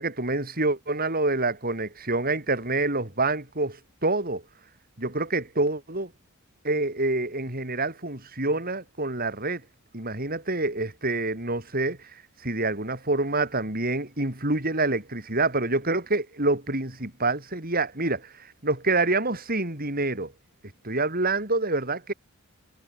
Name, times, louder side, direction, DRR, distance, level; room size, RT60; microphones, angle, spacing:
voice 1, 0.0-4.4 5.0-6.1 6.6-9.6 9.9-20.3 20.8-22.1, right 2 dB, 45° right, 6.9 m, -27 dB
head